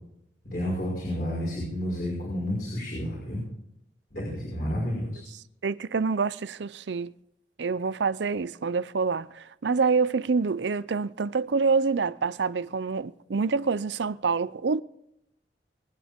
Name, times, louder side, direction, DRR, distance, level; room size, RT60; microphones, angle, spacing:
voice 1, 0.4-3.4 4.1-5.2, equal, 55° left, 5.7 m, -30 dB
voice 2, 5.6-7.1 7.6-14.8, right 4 dB, 85° right, 0.5 m, -26 dB
24.5 x 9.7 x 3.6 m
head